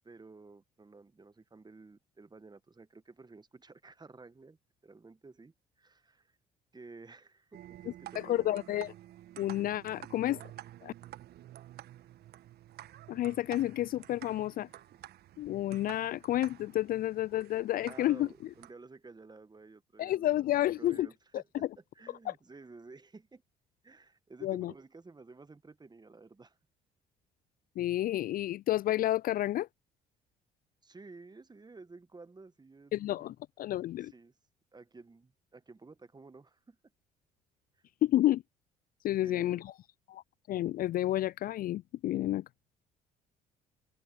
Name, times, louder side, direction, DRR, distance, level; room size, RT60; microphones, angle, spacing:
voice 1, 0.0-4.6 4.8-6.4 6.7-8.6 17.8-23.4 23.8-26.6 30.8-33.3 34.0-34.3 34.7-36.8 39.2-39.6, right 3 dB, 20° right, 1.6 m, -53 dB
sound 1, 7.5-18.7, right 13 dB, 55° right, 1.2 m, -51 dB
voice 2, 8.2-8.9 9.4-10.4 10.8-10.9 13.1-14.7 15.4-18.3 20.0-21.1 21.3-21.4 22.3-22.4 24.4-24.7 27.8-29.7 32.9-34.1 38.0-38.4 39.0-39.6 40.1-40.2 40.5-42.4, left 14 dB, 50° left, 0.4 m, -30 dB
hypercardioid pair, 50°, 19 cm